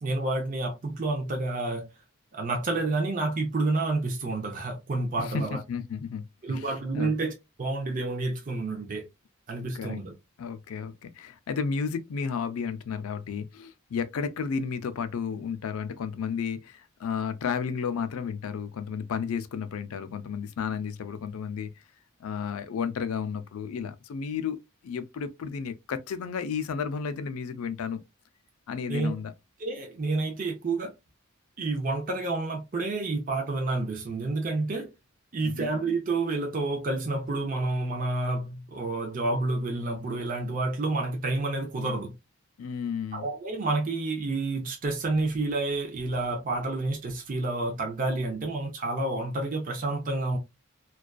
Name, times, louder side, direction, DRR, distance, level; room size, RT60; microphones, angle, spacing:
voice 1, 0.0-1.9 2.3-5.6 6.4-9.1 9.5-10.1 28.9-29.1 29.6-30.9 31.6-34.9 35.3-42.1 43.1-50.4, right 2 dB, 40° right, 0.5 m, -29 dB
voice 2, 5.2-6.2 6.5-7.1 9.7-10.0 10.4-21.7 22.2-28.0 28.7-29.3 35.4-35.7 42.6-43.3, left 6 dB, 90° left, 0.4 m, -32 dB
2.4 x 2.3 x 2.2 m
head